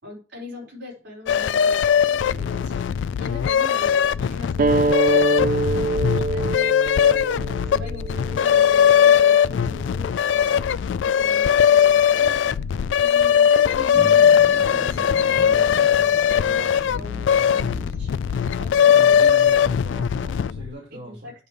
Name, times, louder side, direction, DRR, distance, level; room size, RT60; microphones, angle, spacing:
voice 1, 0.0-7.2 7.6-12.4 12.9-19.2 19.5-19.6 21.0-21.3, left 2 dB, 85° right, -3 dB, 4.7 m, -41 dB
sound 1, 1.3-20.7, left 8 dB, 80° left, 0.3 m, -19 dB
sound 2, 4.6-9.7, right 3 dB, 50° right, 0.3 m, -25 dB
sound 3, 13.9-19.2, right 1 dB, 15° right, 0.7 m, -38 dB
voice 2, 18.8-21.3, left 1 dB, 65° right, -3 dB, 2.7 m, -39 dB
9.4 x 3.3 x 6.7 m, 0.35 s
head